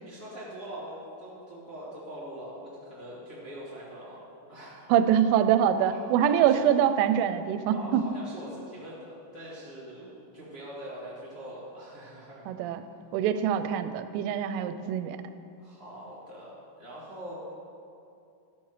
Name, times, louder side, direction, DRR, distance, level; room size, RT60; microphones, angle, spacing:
voice 1, 0.0-4.2 4.5-4.9 5.6-6.6 7.7-12.6 15.6-17.4, right 1 dB, 25° left, -11 dB, 1.9 m, -43 dB
voice 2, 4.9-8.1 12.5-12.8 13.1-15.2, right 9 dB, 85° right, 10 dB, 3.1 m, -24 dB
12.5 x 12.5 x 3.2 m, 2.6 s
omnidirectional pair, 5.6 m